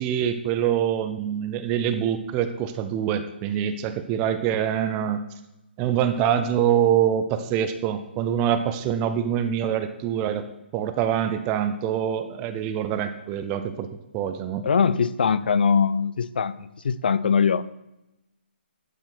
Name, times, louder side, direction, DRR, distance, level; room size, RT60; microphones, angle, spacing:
voice 1, 0.0-5.2 5.8-10.5 10.7-14.6, right 9 dB, 10° right, 10 dB, 0.3 m, -25 dB
voice 2, 14.6-17.8, left 6 dB, 55° left, 17 dB, 0.5 m, -22 dB
11.5 x 5.0 x 5.7 m, 0.90 s
hypercardioid pair, 170°, 6 cm